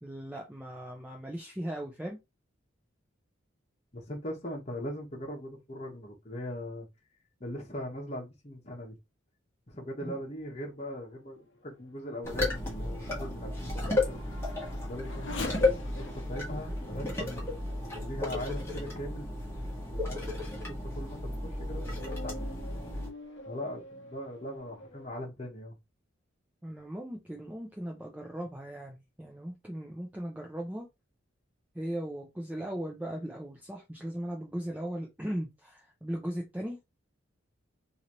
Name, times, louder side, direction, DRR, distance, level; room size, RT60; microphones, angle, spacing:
voice 1, 0.0-2.2 10.0-10.2 26.6-30.9 31.7-36.8, right 1 dB, 10° right, 0.5 m, -38 dB
voice 2, 3.9-6.9 7.4-9.0 9.7-14.2 14.9-17.5 17.8-19.3 19.9-20.3 20.9-22.5 23.4-25.8, equal, 35° left, 1.2 m, -40 dB
Race car auto racing / Accelerating revving vroom, 11.1-19.0 19.6-19.7 20.3-25.1, left 3 dB, 70° left, 0.8 m, -47 dB
sound 1, 12.2-23.1, left 2 dB, 15° left, 1.4 m, -33 dB
3.9 x 2.9 x 3.0 m
head